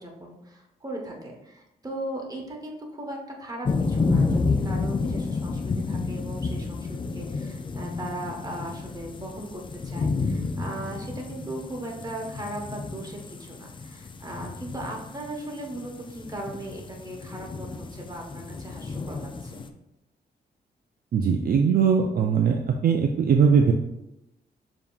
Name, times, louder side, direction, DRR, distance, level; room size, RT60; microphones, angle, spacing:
voice 1, 0.0-19.6, right 1 dB, 20° right, -1 dB, 1.1 m, -38 dB
sound 1, 3.6-19.7, left 4 dB, 30° left, 0.4 m, -30 dB
voice 2, 21.1-23.7, right 6 dB, 55° right, 3 dB, 0.4 m, -20 dB
6.8 x 2.8 x 2.4 m, 0.89 s
cardioid pair, 85°, 18 cm